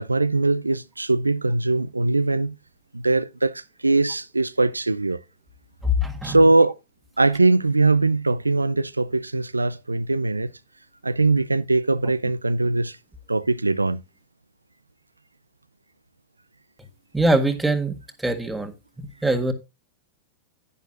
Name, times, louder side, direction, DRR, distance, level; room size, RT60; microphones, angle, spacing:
voice 1, 0.0-2.5 2.9-5.2 6.2-6.8 7.2-10.5 11.0-13.0 13.3-14.0, right 2 dB, 90° right, 0.5 m, -21 dB
voice 2, 5.8-6.4 17.1-17.9 18.2-19.5, right 1 dB, 5° right, 1.6 m, -23 dB
10.5 x 10.0 x 2.4 m
figure-of-eight pair, 95°, 0 cm